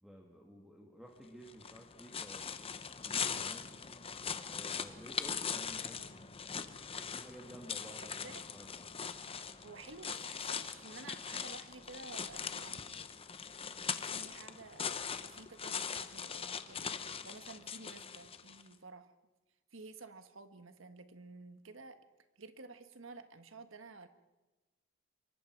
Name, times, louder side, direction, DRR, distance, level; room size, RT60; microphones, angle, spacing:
voice 1, 0.0-2.7 2.9-3.7 4.5-6.3 7.1-8.9, equal, ahead, -1 dB, 2.1 m, -53 dB
sound 1, 1.5-18.7, left 6 dB, 30° left, 0.9 m, -41 dB
voice 2, 8.0-8.4 9.2-12.8 13.3-19.1 19.7-22.0 22.4-24.1, right 3 dB, 80° right, 9 dB, 1.5 m, -53 dB
26.0 x 23.5 x 4.7 m, 1.2 s
head